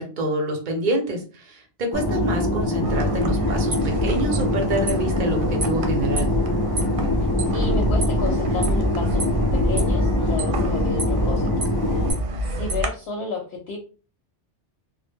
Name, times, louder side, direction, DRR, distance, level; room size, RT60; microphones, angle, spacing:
voice 1, 0.0-6.3, right 1 dB, 50° right, 2 dB, 0.7 m, -27 dB
Fixed-wing aircraft airplane, 1.9-12.1, left 1 dB, 40° left, 0.3 m, -24 dB
sound 1, 2.8-12.9, equal, 90° right, 0.9 m, -26 dB
voice 2, 7.5-9.2 9.5-11.7 12.5-13.8, left 4 dB, 70° left, 2 dB, 0.8 m, -32 dB
2.1 x 2.0 x 3.3 m, 0.36 s
omnidirectional pair, 1.2 m